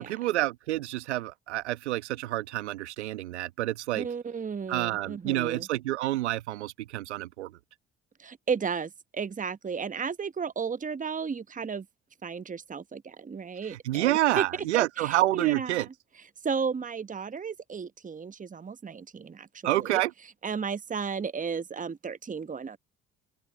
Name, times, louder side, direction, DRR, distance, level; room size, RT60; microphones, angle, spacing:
voice 1, 0.0-4.1 4.7-7.5 13.7-15.9 19.6-20.1, right 16 dB, 85° right, 1.3 m, -28 dB
voice 2, 3.9-5.7 8.2-11.9 12.2-14.5 14.7-15.9 16.4-20.0 20.4-22.8, right 6 dB, 25° right, 1.0 m, -34 dB
hypercardioid pair, 50°, 34 cm